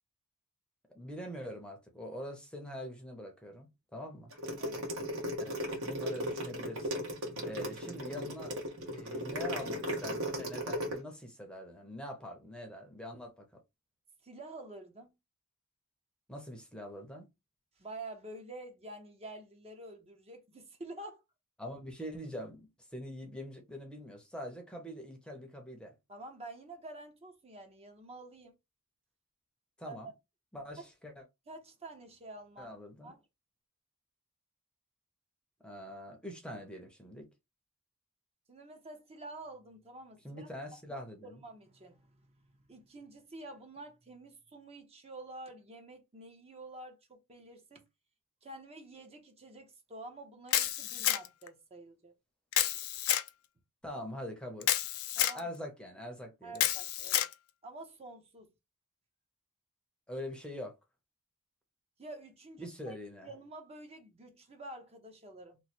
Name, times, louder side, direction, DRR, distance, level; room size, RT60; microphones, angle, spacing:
voice 1, 0.9-4.3 5.4-5.5 5.8-7.0 7.4-8.5 8.9-13.6 16.3-17.3 21.6-25.9 29.8-30.1 30.5-31.2 32.6-33.1 35.6-37.3 40.2-41.4 53.8-54.7 55.3-56.6 60.1-60.7 62.6-63.3, equal, 5° left, 0.7 m, -44 dB
sound 1, 4.3-10.9, equal, 70° right, 1.2 m, -36 dB
voice 2, 14.2-15.1 17.8-21.2 26.1-28.6 29.8-30.0 30.8-30.9 31.5-32.7 33.0-33.2 38.5-40.5 40.9-47.8 48.4-52.1 55.2-55.5 56.4-57.3 57.6-58.5 62.0-63.0 63.2-65.6, right 2 dB, 30° right, 0.8 m, -48 dB
Camera, 50.5-51.5 52.5-53.3 54.6-55.4 56.6-57.3, left 12 dB, 65° left, 0.4 m, -29 dB
3.1 x 2.1 x 4.2 m
head